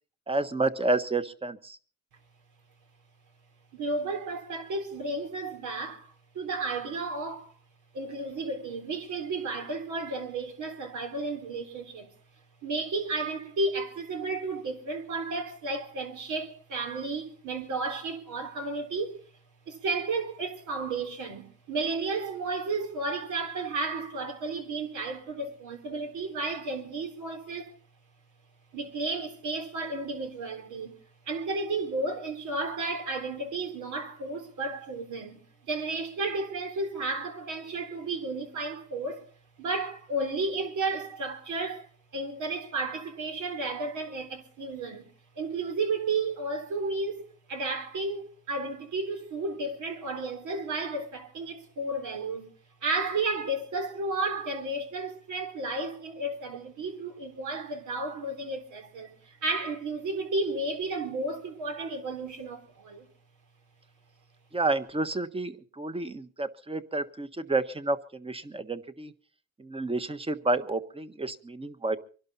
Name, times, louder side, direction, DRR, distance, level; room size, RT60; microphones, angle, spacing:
voice 1, 0.3-1.8 64.5-69.1 69.6-72.0, right 2 dB, 20° right, 1.3 m, -30 dB
voice 2, 3.7-7.5 7.9-12.1 12.6-19.2 19.7-27.8 28.7-31.0 31.3-35.4 35.7-39.2 39.6-45.1 45.4-52.5 52.8-63.1, right 3 dB, 75° right, 3.6 m, -33 dB
24.5 x 11.5 x 4.1 m
cardioid pair, 90°, 30 cm